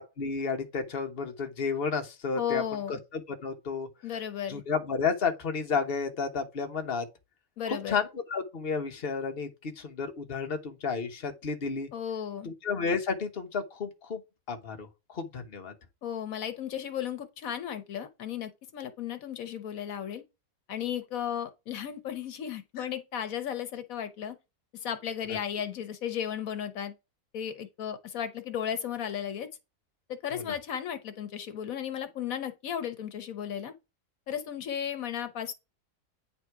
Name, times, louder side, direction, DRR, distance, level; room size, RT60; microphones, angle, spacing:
voice 1, 0.0-2.6 2.9-3.9 4.5-7.0 7.7-11.9 12.4-14.2 14.5-14.9 15.1-15.7 22.8-22.9 30.3-30.5, left 5 dB, 45° left, 1.3 m, -32 dB
voice 2, 2.4-3.0 4.0-4.6 7.6-8.0 11.9-12.5 16.0-20.2 20.7-24.4 24.7-26.9 27.3-29.5 30.1-33.7 34.3-35.5, left 9 dB, 80° left, 1.3 m, -35 dB
9.1 x 4.2 x 4.7 m
omnidirectional pair, 1.4 m